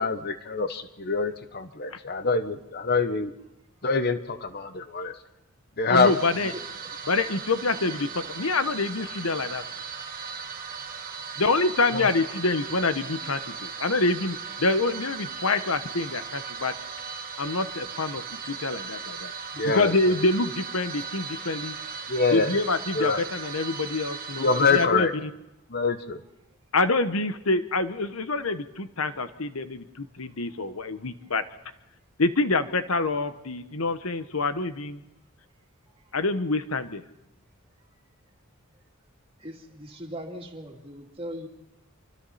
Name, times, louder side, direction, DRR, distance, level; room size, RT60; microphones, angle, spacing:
voice 1, 0.0-3.3 3.8-5.1 5.8-6.1 11.9-12.1 19.6-19.9 22.1-22.6 23.0-23.2 24.4-25.1 25.7-26.2, left 4 dB, 50° left, 9 dB, 1.0 m, -25 dB
voice 2, 5.9-6.5 7.1-9.6 11.4-16.7 17.4-19.3 19.6-21.8 22.3-25.3 26.7-31.4 32.2-35.0 36.1-37.0, left 3 dB, 80° left, 10 dB, 1.3 m, -26 dB
sound 1, 5.9-24.9, right 6 dB, 40° right, 1.9 m, -37 dB
voice 3, 39.4-41.5, equal, 25° right, 1 dB, 2.7 m, -39 dB
28.0 x 24.5 x 4.3 m, 0.91 s
head